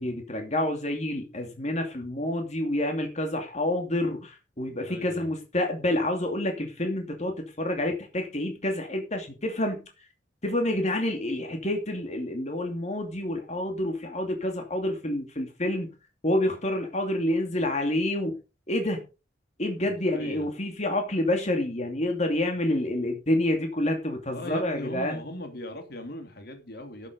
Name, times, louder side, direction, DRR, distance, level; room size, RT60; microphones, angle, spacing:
voice 1, 0.0-9.8 10.4-15.9 16.2-18.4 18.7-19.0 19.6-25.2, left 1 dB, 40° left, 2.6 m, -28 dB
voice 2, 4.8-5.3 19.9-20.5 24.3-27.1, left 1 dB, 60° left, 2.7 m, -39 dB
11.5 x 8.2 x 5.3 m
head